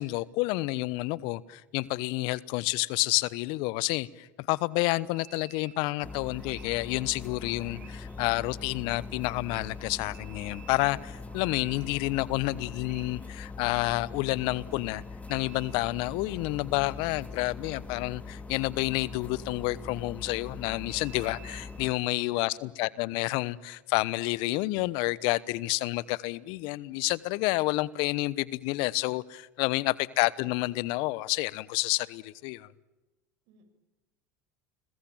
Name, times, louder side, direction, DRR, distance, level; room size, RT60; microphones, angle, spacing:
voice 1, 0.0-15.0 15.3-32.7, left 21 dB, 60° left, 1.1 m, -29 dB
sound 1, 5.1-16.6 20.9-21.7, right 10 dB, 85° right, 5.9 m, -56 dB
sound 2, 6.0-21.9, left 4 dB, 15° left, 2.0 m, -42 dB
voice 2, 22.0-22.5 29.8-29.9 33.5-33.6, right 6 dB, 60° right, 7.5 m, -56 dB
30.0 x 21.5 x 9.1 m
hypercardioid pair, 85°, 9 cm